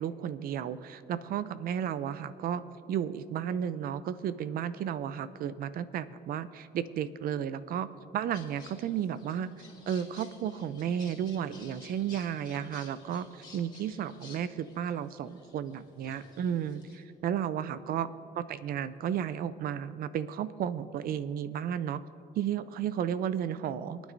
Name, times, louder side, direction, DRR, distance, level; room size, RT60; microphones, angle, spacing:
voice 1, 0.0-2.6 2.9-7.9 8.1-9.5 9.9-18.1 18.4-22.0 22.4-24.0, right 9 dB, 60° right, 14 dB, 0.6 m, -33 dB
sound 1, 8.3-17.0, left 3 dB, 25° left, 2.4 m, -54 dB
27.5 x 9.3 x 2.7 m, 2.5 s
cardioid pair, 110°, 17 cm